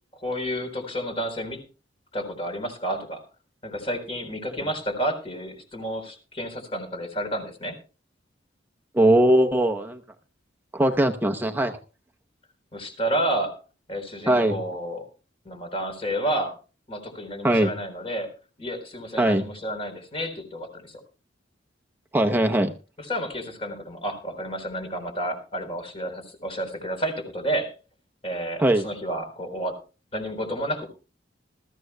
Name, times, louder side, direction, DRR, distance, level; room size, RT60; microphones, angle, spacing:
voice 1, 0.2-1.6 2.1-3.2 3.6-7.8 12.7-13.6 13.9-15.0 15.4-16.5 16.9-18.3 18.6-21.0 23.0-27.7 28.2-29.8 30.1-30.9, right 1 dB, 30° left, 6 dB, 4.0 m, -30 dB
voice 2, 8.9-10.0 10.7-11.8 14.3-14.6 17.4-17.7 19.2-19.5 22.1-22.7 28.6-28.9, right 1 dB, 10° right, 4 dB, 0.7 m, -20 dB
20.5 x 14.0 x 2.2 m, 0.33 s
head